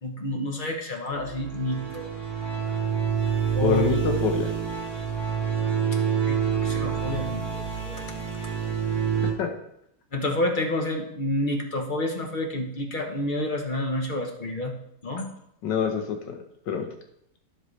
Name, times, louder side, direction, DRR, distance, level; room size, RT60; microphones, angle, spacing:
voice 1, 0.0-2.1 3.6-3.8 6.3-7.4 7.8-8.1 10.1-14.7 15.0-15.3, left 1 dB, 35° left, 3 dB, 0.9 m, -29 dB
sound 1, 1.1-9.3, right 7 dB, 15° left, 2.3 m, -27 dB
voice 2, 3.6-4.5 9.4-9.5 15.6-16.4 16.7-16.9, left 7 dB, 80° left, 4 dB, 1.7 m, -26 dB
10.5 x 7.3 x 3.2 m, 0.76 s
omnidirectional pair, 1.9 m